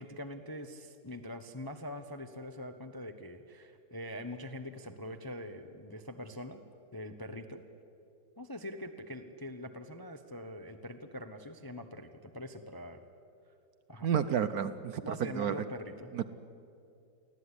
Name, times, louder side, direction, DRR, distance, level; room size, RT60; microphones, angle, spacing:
voice 1, 0.0-6.6 6.9-7.6 8.4-13.0 13.9-14.1 15.0-16.1, left 1 dB, 20° left, 7 dB, 0.6 m, -43 dB
voice 2, 14.0-15.6 16.1-16.3, right 8 dB, 65° right, 11 dB, 1.0 m, -31 dB
24.0 x 16.0 x 9.8 m, 2.5 s
omnidirectional pair, 2.0 m